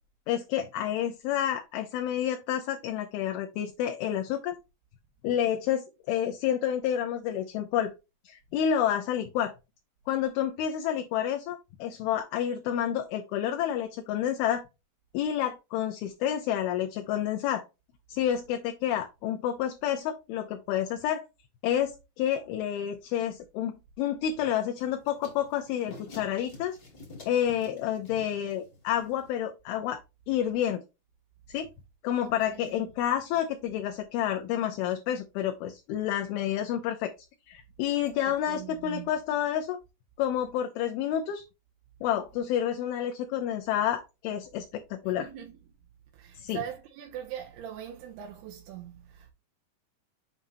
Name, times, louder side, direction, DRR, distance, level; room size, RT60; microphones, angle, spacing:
voice 1, 0.3-4.6 5.2-7.9 8.3-9.5 10.1-14.6 15.1-17.6 18.1-21.3 21.6-26.8 27.3-30.0 30.3-30.8 31.5-31.7 32.0-37.1 37.5-39.8 40.2-41.4 42.0-45.3 46.4-46.6, left 10 dB, 80° left, 2.4 m, -29 dB
sound 1, 24.8-29.5, left 2 dB, 40° left, 1.4 m, -50 dB
voice 2, 32.2-32.9 38.5-39.1 45.2-45.6 46.1-49.3, right 10 dB, 80° right, 2.6 m, -41 dB
7.3 x 5.3 x 2.7 m
omnidirectional pair, 4.9 m